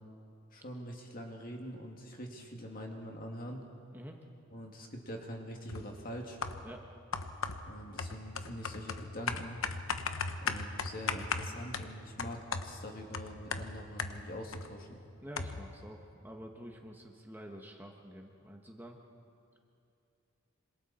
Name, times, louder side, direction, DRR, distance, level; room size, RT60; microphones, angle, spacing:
voice 1, 0.5-3.6 4.5-6.4 7.7-9.6 10.4-15.0, equal, 40° left, 1 dB, 2.3 m, -44 dB
sound 1, 5.7-6.0 6.4-6.8 7.1-14.7 15.0-15.1 15.4-15.8, left 4 dB, 70° left, 1.0 m, -37 dB
voice 2, 15.2-19.0, equal, 10° right, 1 dB, 1.1 m, -48 dB
26.5 x 26.5 x 4.3 m, 2.6 s
head